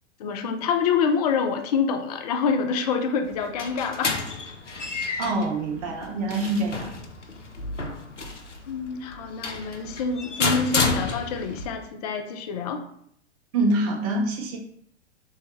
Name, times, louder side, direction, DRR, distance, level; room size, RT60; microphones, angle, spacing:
voice 1, 0.2-4.2 8.7-12.8, left 5 dB, 35° left, 6 dB, 0.5 m, -26 dB
sound 1, 3.2-11.7, left 3 dB, 85° left, 0.7 m, -31 dB
voice 2, 5.2-6.9 13.5-14.6, right 2 dB, 35° right, 2 dB, 0.9 m, -25 dB
6.3 x 2.2 x 3.0 m, 0.67 s
figure-of-eight pair, 105°, 35 cm